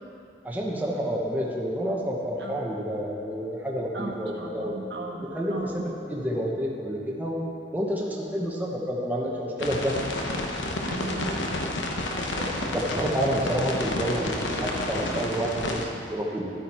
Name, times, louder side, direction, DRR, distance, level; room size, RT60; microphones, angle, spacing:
voice 1, 0.4-4.8 5.3-7.5 7.7-10.0 12.4-12.5 12.7-16.5, equal, 10° right, -3 dB, 1.0 m, -29 dB
voice 2, 3.9-5.8 10.8-11.3 12.1-12.7, right 2 dB, 65° right, 0 dB, 1.4 m, -36 dB
sound 1, 9.6-15.9, left 2 dB, 90° left, 1.0 m, -30 dB
12.0 x 8.5 x 4.4 m, 2.7 s
head